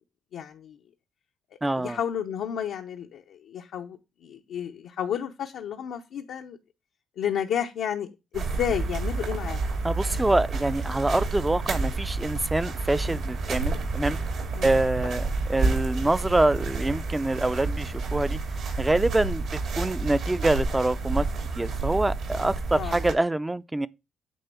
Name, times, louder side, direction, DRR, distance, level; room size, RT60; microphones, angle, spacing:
voice 1, 0.3-0.8 1.7-6.6 7.2-8.1 8.3-9.7 13.0-13.2 14.5-14.7 22.7-23.0, left 9 dB, 80° left, 0.7 m, -32 dB
voice 2, 1.6-2.0 9.8-14.2 14.6-18.4 18.8-19.5 19.7-21.3 21.6-23.9, right 2 dB, 15° right, 0.5 m, -25 dB
sound 1, 8.3-23.1, right 3 dB, 75° right, 2.8 m, -29 dB
9.3 x 3.4 x 6.9 m
cardioid pair, 90°, 0 cm